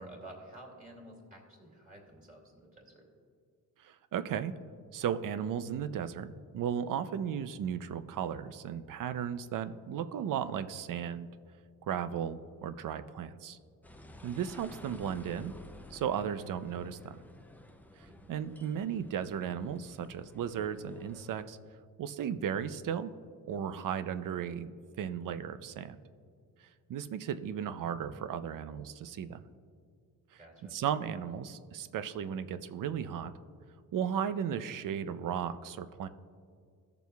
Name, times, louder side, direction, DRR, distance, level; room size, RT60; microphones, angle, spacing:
voice 1, 0.0-3.1 18.0-18.3 30.4-30.7, right 1 dB, 20° right, -1 dB, 2.4 m, -51 dB
voice 2, 3.8-4.5 4.9-11.3 11.9-13.6 14.2-15.5 15.9-17.2 18.0-21.6 22.0-23.1 23.5-24.7 25.0-26.0 26.9-29.4 30.3-30.4 30.7-33.3 33.9-36.1, right 8 dB, 60° right, 11 dB, 0.5 m, -35 dB
sound 1, 13.8-21.4, left 1 dB, 5° left, 0.4 m, -53 dB
18.5 x 6.9 x 2.3 m, 2.2 s
cardioid pair, 120°, 38 cm